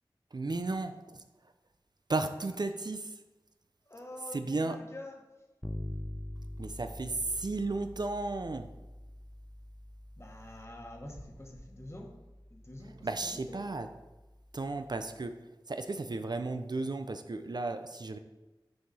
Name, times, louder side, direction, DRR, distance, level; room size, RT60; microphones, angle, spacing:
voice 1, 0.3-1.2 2.1-3.1 4.3-4.8 6.6-8.7 13.0-13.9 14.5-18.2, right 3 dB, 55° right, 8 dB, 0.4 m, -34 dB
voice 2, 3.8-5.2 10.2-12.1 12.5-13.6, left 1 dB, 30° left, 1 dB, 1.3 m, -47 dB
Bass guitar, 5.6-15.3, left 1 dB, 10° left, 0.4 m, -46 dB
6.3 x 4.7 x 4.1 m, 1.1 s
wide cardioid pair, 50°, 9 cm